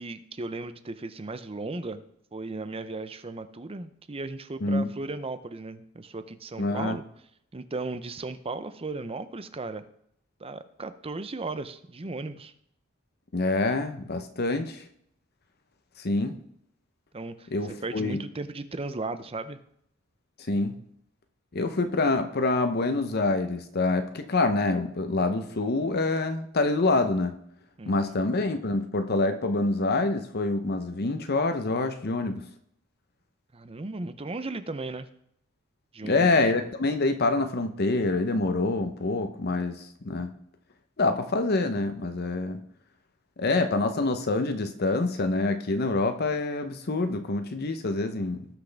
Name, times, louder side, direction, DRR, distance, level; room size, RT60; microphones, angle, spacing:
voice 1, 0.0-2.0 2.3-7.0 7.5-9.8 10.4-12.5 17.1-19.6 27.8-28.1 33.5-35.1 35.9-36.3, right 3 dB, 30° right, 11 dB, 0.6 m, -36 dB
voice 2, 6.6-7.0 13.3-14.8 16.0-16.4 17.5-18.2 20.5-20.7 21.5-27.3 27.9-32.4 36.0-40.3 41.0-42.6 43.4-48.5, left 2 dB, 50° left, 8 dB, 0.8 m, -26 dB
18.0 x 6.1 x 3.4 m, 0.71 s
head